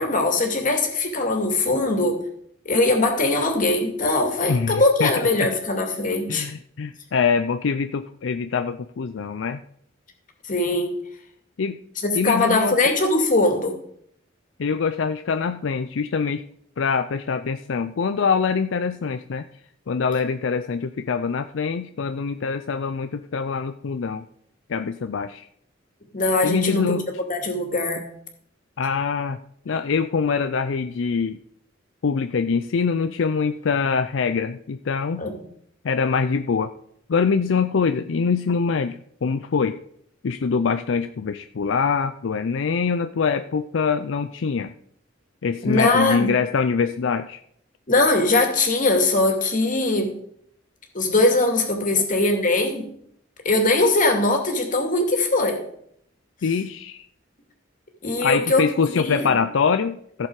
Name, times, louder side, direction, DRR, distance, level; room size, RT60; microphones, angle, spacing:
voice 1, 0.0-2.2 2.6-6.5 10.5-11.0 12.0-13.7 26.1-27.0 27.3-28.1 29.7-29.8 35.2-35.4 45.6-46.3 47.9-50.1 50.9-52.9 53.4-55.6 58.0-58.6 58.9-59.3, left 2 dB, 45° left, 3 dB, 2.4 m, -21 dB
voice 2, 4.5-5.5 6.3-9.6 11.6-11.8 12.1-12.8 14.6-16.4 16.8-19.4 19.9-24.3 24.7-25.5 26.4-27.1 28.0-28.1 28.8-29.4 29.7-31.4 32.0-35.3 35.8-36.7 37.1-39.8 40.2-44.7 45.4-47.4 56.4-57.0 58.2-60.3, left 5 dB, 75° left, 9 dB, 0.5 m, -24 dB
15.0 x 6.9 x 4.8 m, 0.68 s
head